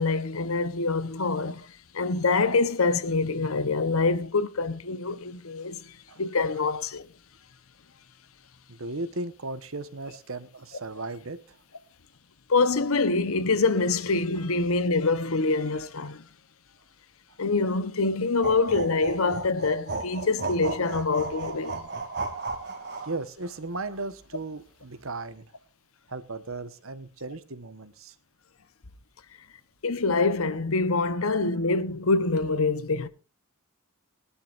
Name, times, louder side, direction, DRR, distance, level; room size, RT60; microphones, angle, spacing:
voice 1, 0.0-7.1 12.5-16.2 17.4-21.9 29.8-33.1, left 3 dB, 75° left, 1.0 m, -25 dB
voice 2, 8.7-11.6 22.9-25.5 26.1-28.1, right 2 dB, 70° right, 1.3 m, -36 dB
sound 1, 18.4-23.2, right 3 dB, 50° right, 2.7 m, -34 dB
22.0 x 11.5 x 2.6 m
head